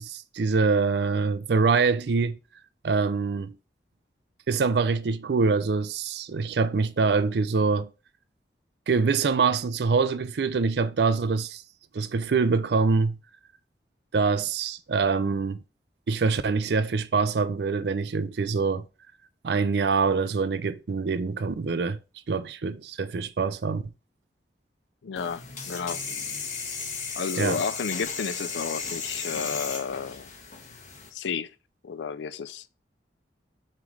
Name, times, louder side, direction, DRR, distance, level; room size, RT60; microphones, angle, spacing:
voice 1, 0.0-2.4 2.8-3.5 4.5-7.9 8.9-11.6 11.9-13.2 14.1-15.6 16.1-18.8 19.4-22.0 22.3-23.8 27.4-27.6, right 4 dB, 70° right, 0.4 m, -24 dB
voice 2, 25.0-26.0 27.2-30.3 31.1-31.5 31.8-32.7, left 6 dB, 90° left, 0.4 m, -32 dB
sound 1, 25.2-31.1, left 5 dB, 40° left, 1.1 m, -35 dB
7.4 x 3.1 x 4.9 m
head